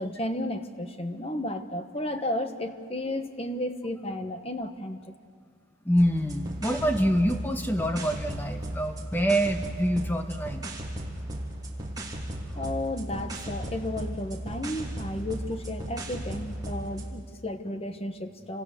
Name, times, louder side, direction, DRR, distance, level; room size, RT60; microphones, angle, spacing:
voice 1, 0.0-5.0 12.5-18.6, left 1 dB, 30° left, 7 dB, 1.3 m, -33 dB
voice 2, 5.8-10.6, equal, 10° left, 6 dB, 1.3 m, -26 dB
sound 1, 6.0-17.1, right 1 dB, 20° right, 3.1 m, -36 dB
28.5 x 26.0 x 6.7 m, 2.1 s
head